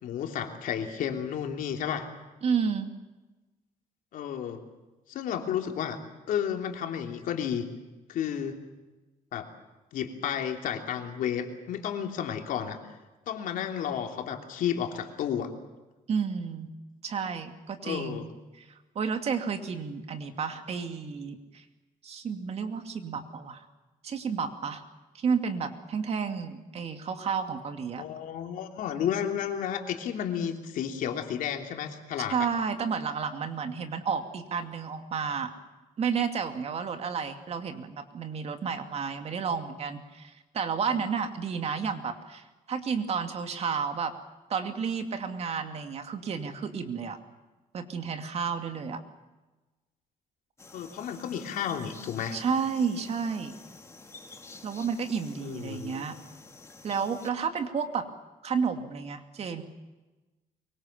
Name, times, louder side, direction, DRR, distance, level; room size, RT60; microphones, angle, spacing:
voice 1, 0.0-2.1 4.1-4.6 5.1-6.0 6.3-7.7 8.1-8.6 9.3-9.5 9.9-12.8 13.3-15.5 17.8-18.2 28.0-32.5 50.7-52.4 55.4-56.0, left 9 dB, 85° left, 4 dB, 3.1 m, -32 dB
voice 2, 2.4-2.9 16.1-16.7 17.0-18.3 18.6-18.7 18.9-21.6 22.0-23.7 24.0-24.8 25.1-28.1 32.3-35.5 36.0-44.1 44.5-47.2 47.7-49.0 52.3-53.6 54.6-56.1 56.8-58.1 58.4-59.6, right 6 dB, 50° right, 7 dB, 2.6 m, -31 dB
sound 1, 50.6-57.3, left 3 dB, 20° left, 2.2 m, -49 dB
24.0 x 23.5 x 7.4 m, 1.1 s
cardioid pair, 135°, 14 cm